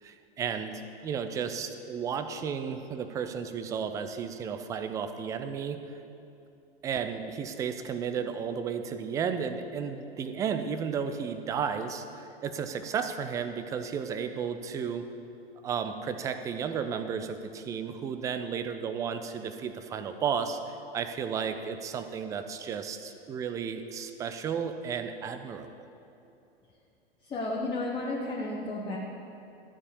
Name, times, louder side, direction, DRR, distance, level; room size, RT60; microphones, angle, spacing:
voice 1, 0.0-5.8 6.8-15.1 15.6-25.9, right 7 dB, 10° right, 9 dB, 0.3 m, -33 dB
voice 2, 27.2-29.0, left 2 dB, 15° left, -3 dB, 1.1 m, -32 dB
13.0 x 4.8 x 7.0 m, 2.8 s
figure-of-eight pair, 95°, 31 cm